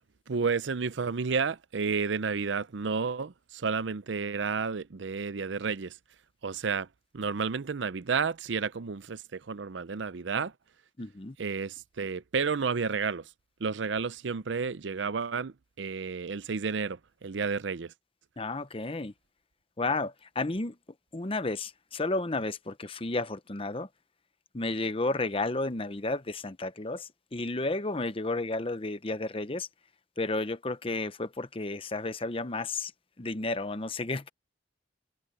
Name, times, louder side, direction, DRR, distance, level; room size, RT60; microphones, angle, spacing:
voice 1, 0.3-5.9 6.4-6.9 7.1-10.5 11.4-13.2 13.6-17.9, right 5 dB, 80° right, 0.6 m, -31 dB
voice 2, 11.0-11.4 18.4-19.1 19.8-20.8 21.1-23.9 24.5-29.7 30.2-32.9 33.2-34.3, left 2 dB, 30° left, 0.8 m, -32 dB
head